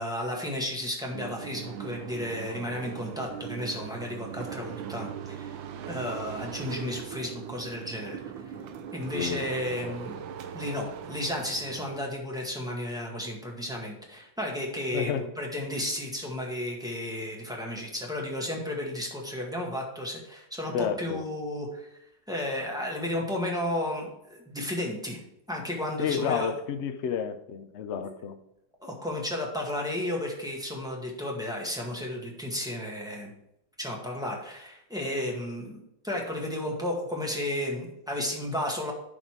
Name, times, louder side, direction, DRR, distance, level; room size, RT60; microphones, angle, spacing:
voice 1, 0.0-5.6 5.9-8.2 8.4-8.5 8.9-10.2 10.5-21.9 22.3-25.2 25.5-26.5 28.8-33.3 33.8-38.9, left 1 dB, ahead, -1 dB, 1.6 m, -33 dB
sound 1, 1.1-12.0, right 8 dB, 90° right, 1.5 m, -40 dB
voice 2, 9.1-10.0 14.9-15.2 20.7-21.2 26.0-28.4, left 8 dB, 80° left, 7 dB, 0.6 m, -31 dB
11.5 x 4.1 x 4.7 m, 0.81 s
omnidirectional pair, 2.1 m